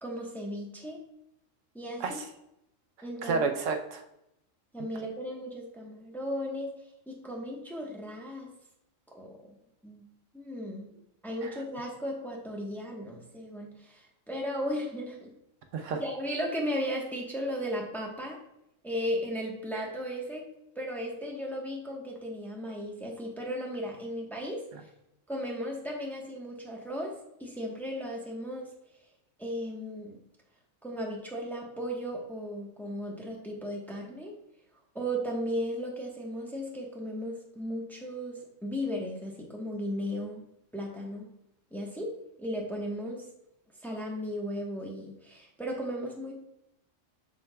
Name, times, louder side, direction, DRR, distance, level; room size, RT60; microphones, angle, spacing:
voice 1, 0.0-1.0 1.7-2.2 3.0-3.4 4.7-6.7 7.1-8.5 9.1-9.6 9.8-10.1 10.3-10.9 11.2-15.3 16.0-18.4 18.8-20.5 20.8-24.6 25.3-28.7 29.4-30.2 30.8-34.3 34.9-40.4 40.7-41.3 41.7-42.1 42.4-43.2 43.8-46.3, equal, ahead, -1 dB, 1.0 m, -35 dB
voice 2, 3.2-4.0 11.4-11.5 15.7-16.0, right 4 dB, 80° right, 5 dB, 1.1 m, -30 dB
7.3 x 6.4 x 2.3 m, 0.83 s
omnidirectional pair, 1.3 m